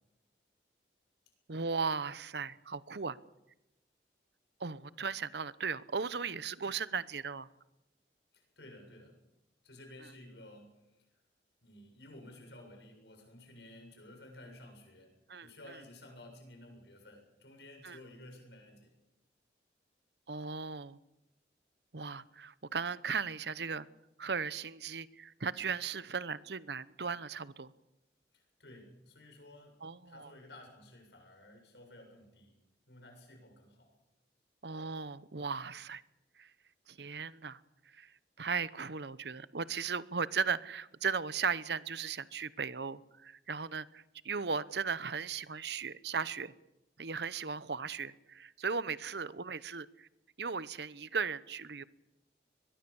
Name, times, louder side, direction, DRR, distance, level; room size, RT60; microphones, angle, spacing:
voice 1, 1.5-3.2 4.6-7.5 15.3-15.5 17.8-18.0 20.3-21.0 21.9-23.9 24.2-27.7 29.8-30.3 34.6-36.0 36.4-36.5 36.9-37.6 37.9-38.1 38.4-46.5 47.0-50.1 50.4-51.8, right 5 dB, 80° right, 17 dB, 0.9 m, -37 dB
voice 2, 8.3-9.2 9.6-11.1 11.6-15.1 15.4-18.9 28.3-32.6 32.9-33.9, left 1 dB, 85° left, 3 dB, 7.4 m, -54 dB
22.5 x 21.5 x 7.1 m, 0.94 s
head